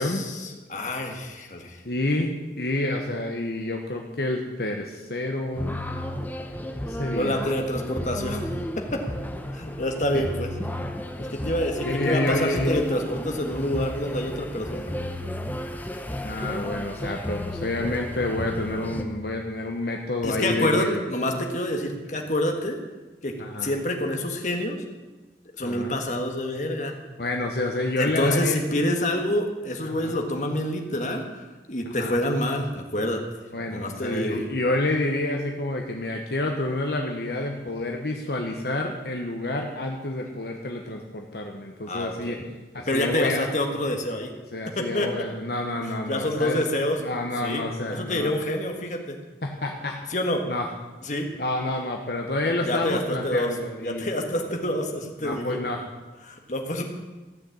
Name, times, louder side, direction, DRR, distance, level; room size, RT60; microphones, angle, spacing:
voice 1, 0.0-1.8 7.1-8.4 8.8-9.0 9.5-10.5 11.2-14.9 20.2-22.8 23.2-23.3 23.6-24.8 25.6-26.9 28.0-31.2 31.7-33.2 33.7-34.4 41.9-42.4 42.9-44.3 44.7-45.1 46.1-47.0 47.4-47.6 47.9-49.2 50.1-50.4 51.0-51.3 52.6-53.5 53.8-55.6 56.2-56.8, left 1 dB, 45° left, 3 dB, 1.7 m, -27 dB
voice 2, 1.8-5.9 6.8-7.5 10.1-10.2 11.8-12.8 16.2-21.0 22.1-22.2 23.4-23.7 25.6-26.0 27.2-28.6 29.8-30.2 32.0-32.1 33.5-42.4 42.7-43.4 44.5-46.6 47.0-48.3 49.4-50.0 50.5-50.7 51.4-54.1 54.4-54.6 55.2-55.9, left 2 dB, 65° left, 1 dB, 1.2 m, -28 dB
sound 1, 5.5-19.0, left 1 dB, 10° left, 0.8 m, -33 dB
14.5 x 6.5 x 8.7 m, 1.2 s
head